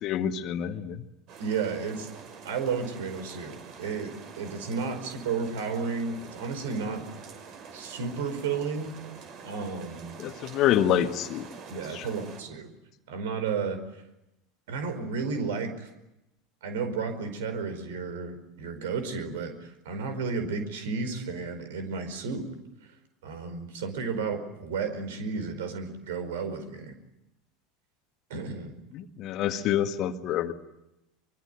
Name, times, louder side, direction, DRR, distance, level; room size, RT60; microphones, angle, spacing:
voice 1, 0.0-1.0 10.2-11.5 11.9-12.1 28.9-30.5, left 10 dB, 45° left, 9 dB, 1.7 m, -27 dB
sound 1, 1.3-12.4, right 6 dB, 45° right, 6.0 m, -46 dB
voice 2, 1.4-2.1 2.4-7.1 7.7-9.0 9.4-10.2 11.7-12.7 13.1-13.8 14.7-15.9 16.6-22.5 23.2-26.9 28.3-28.8, right 5 dB, 65° right, 9 dB, 4.9 m, -32 dB
24.5 x 24.0 x 9.4 m, 0.90 s
figure-of-eight pair, 75°, 0 cm